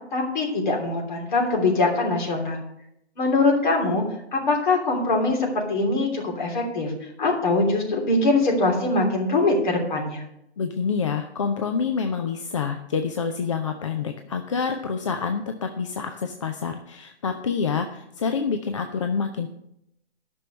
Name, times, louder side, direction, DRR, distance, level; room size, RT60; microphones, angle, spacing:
voice 1, 0.1-2.6 3.2-4.0 4.3-10.2, left 2 dB, 45° left, 1 dB, 3.1 m, -23 dB
voice 2, 10.6-19.5, left 5 dB, 30° left, 6 dB, 0.5 m, -27 dB
10.5 x 6.2 x 6.4 m, 0.80 s
figure-of-eight pair, 135°, 33 cm